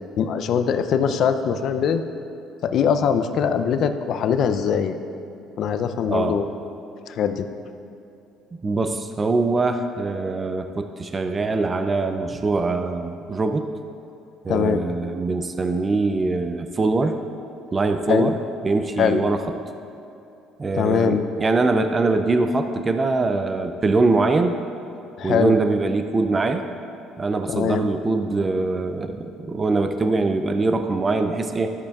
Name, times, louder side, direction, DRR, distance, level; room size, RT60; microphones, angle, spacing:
voice 1, 0.2-2.0 2.6-5.0 5.6-6.5 7.1-7.5 14.5-14.8 18.1-18.4 19.0-19.2 20.7-21.2 25.2-25.6 27.5-27.9, left 7 dB, 60° left, 9 dB, 0.5 m, -22 dB
voice 2, 6.1-6.4 8.6-13.7 14.4-17.2 17.7-18.4 18.6-19.6 20.6-24.5 25.2-26.7 27.2-31.7, right 3 dB, 25° right, 7 dB, 0.4 m, -23 dB
13.0 x 8.5 x 2.4 m, 2.7 s
cardioid pair, 110°, 0 cm